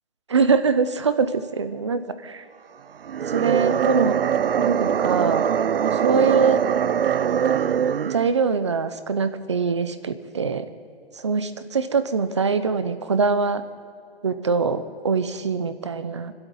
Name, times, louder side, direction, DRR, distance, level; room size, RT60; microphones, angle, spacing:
voice 1, 0.3-2.4 3.2-4.2 4.6-5.5 5.9-6.6 8.1-10.7 11.2-13.6 14.2-16.3, right 5 dB, 30° right, 11 dB, 0.7 m, -23 dB
sound 1, 3.0-8.3, right 8 dB, 65° right, 0.6 m, -22 dB
23.5 x 12.5 x 9.4 m, 2.5 s
hypercardioid pair, 180°, 31 cm